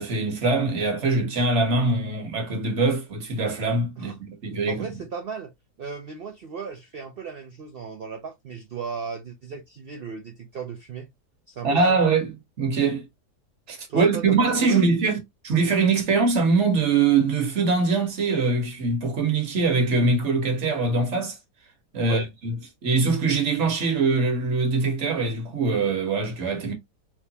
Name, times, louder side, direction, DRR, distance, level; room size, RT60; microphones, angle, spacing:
voice 1, 0.0-4.8 11.6-13.1 13.7-15.2 15.4-21.4 21.9-22.5 22.8-26.7, right 4 dB, 50° right, 1.3 m, -23 dB
voice 2, 4.7-5.5 5.8-11.1 11.5-12.0 13.9-14.8 22.0-22.3, right 5 dB, 75° right, 0.5 m, -36 dB
3.3 x 3.0 x 2.7 m
omnidirectional pair, 1.7 m